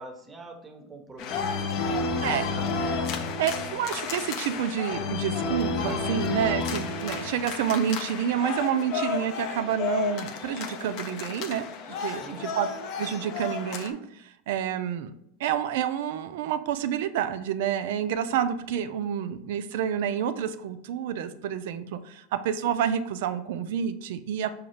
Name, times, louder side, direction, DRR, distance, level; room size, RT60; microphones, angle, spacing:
voice 1, 0.0-2.8 12.1-12.4, right 2 dB, 15° right, 5 dB, 0.6 m, -44 dB
sound 1, 1.2-13.9, left 4 dB, 50° left, 0.4 m, -31 dB
voice 2, 3.4-11.7 12.0-12.7 13.0-15.1 15.4-24.5, right 9 dB, 70° right, 11 dB, 0.3 m, -29 dB
5.1 x 2.3 x 3.1 m, 0.75 s
supercardioid pair, 120°, 0 cm